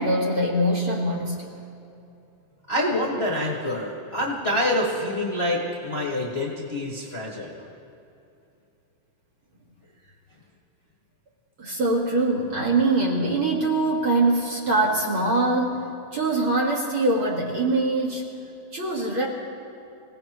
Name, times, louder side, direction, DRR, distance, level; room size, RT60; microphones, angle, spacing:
voice 1, 0.0-1.5 11.6-18.3 18.7-19.3, right 2 dB, 45° right, -2 dB, 2.2 m, -23 dB
voice 2, 2.7-7.7, left 1 dB, 25° left, -3 dB, 1.5 m, -26 dB
26.5 x 17.5 x 3.0 m, 2.7 s
omnidirectional pair, 3.5 m